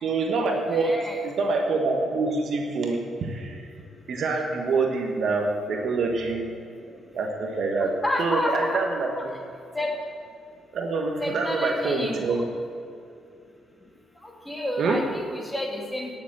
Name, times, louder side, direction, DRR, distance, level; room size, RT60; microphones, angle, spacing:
voice 1, 0.0-3.6 4.1-6.5 7.1-9.3 10.7-12.4 14.8-15.0, right 3 dB, 60° right, 3 dB, 1.4 m, -26 dB
voice 2, 0.7-1.2 7.8-8.8 9.2-9.3 9.7-9.9 11.2-12.4 14.2-16.1, left 1 dB, 10° left, 1 dB, 2.3 m, -30 dB
10.5 x 7.1 x 7.7 m, 2.5 s
cardioid pair, 90°, 0 cm